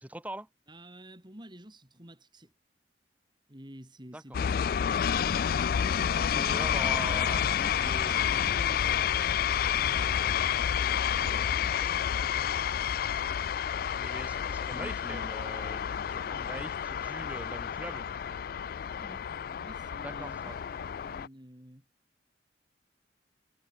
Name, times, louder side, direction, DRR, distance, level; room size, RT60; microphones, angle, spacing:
voice 1, 0.0-0.5 4.1-4.2 6.0-8.5 10.9-11.5 12.1-12.4 14.0-18.1 20.0-20.6, right 1 dB, 10° right, 2.2 m, -42 dB
voice 2, 0.7-2.5 3.5-4.6 6.0-9.4 9.8-10.1 11.1-11.5 14.7-15.3 16.8-16.9 18.9-19.2 19.5-21.8, right 1 dB, 25° right, 4.3 m, -49 dB
sound 1, 4.3-21.3, left 8 dB, 55° left, 0.3 m, -29 dB
head